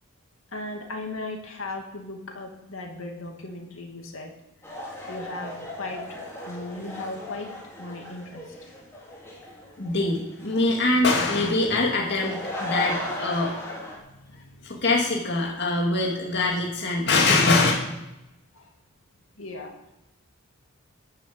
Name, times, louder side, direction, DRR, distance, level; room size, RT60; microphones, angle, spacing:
voice 1, 0.5-4.3 5.1-6.1 6.4-8.7 14.0-14.8 18.5-18.7 19.4-19.7, left 2 dB, 70° left, 2 dB, 2.6 m, -37 dB
sound 1, 4.6-14.0, left 1 dB, 15° left, 3.6 m, -37 dB
voice 2, 9.8-13.7 14.6-17.7, left 2 dB, 50° left, -2 dB, 2.3 m, -23 dB
13.5 x 7.1 x 8.6 m, 0.93 s
head